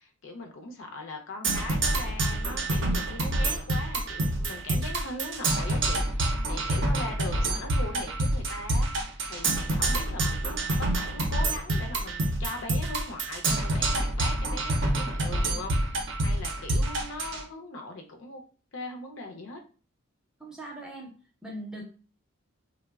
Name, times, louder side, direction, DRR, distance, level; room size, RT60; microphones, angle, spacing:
voice 1, 0.0-8.9 9.3-18.4 18.7-19.6, left 2 dB, 70° left, 3 dB, 0.5 m, -40 dB
Percussion, 1.4-17.4, right 2 dB, 60° right, 0.5 m, -27 dB
voice 2, 20.4-21.1 21.4-21.8, right 1 dB, 5° right, -2 dB, 0.4 m, -40 dB
3.0 x 2.0 x 2.2 m, 0.37 s
head